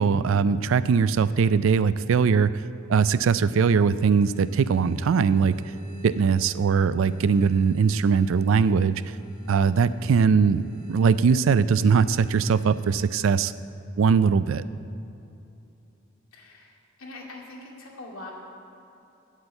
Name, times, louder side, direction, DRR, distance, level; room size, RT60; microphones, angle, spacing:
voice 1, 0.0-2.5 2.9-5.6 6.0-9.0 9.5-13.5 14.0-14.6, right 6 dB, 70° right, 15 dB, 0.4 m, -21 dB
sound 1, 3.9-13.2, right 6 dB, 5° right, 1.6 m, -53 dB
voice 2, 16.3-18.3, left 2 dB, 80° left, -2 dB, 2.3 m, -43 dB
8.9 x 8.1 x 7.8 m, 2.8 s
head